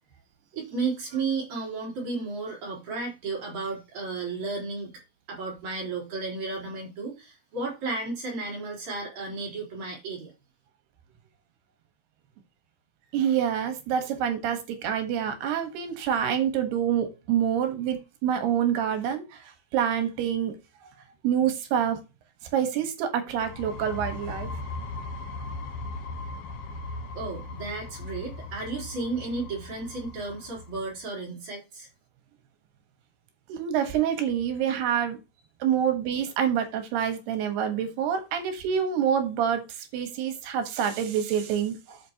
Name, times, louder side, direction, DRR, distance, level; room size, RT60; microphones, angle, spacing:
voice 1, 0.5-5.0 5.3-10.3 27.1-31.9, right 3 dB, 50° right, 4.9 m, -33 dB
voice 2, 13.1-20.5 21.2-22.0 22.5-24.6 33.5-35.2 35.6-42.0, right 9 dB, 85° right, 3.4 m, -27 dB
sound 1, 23.3-30.9, left 3 dB, 75° left, 1.4 m, -38 dB
13.0 x 5.2 x 2.9 m
omnidirectional pair, 4.5 m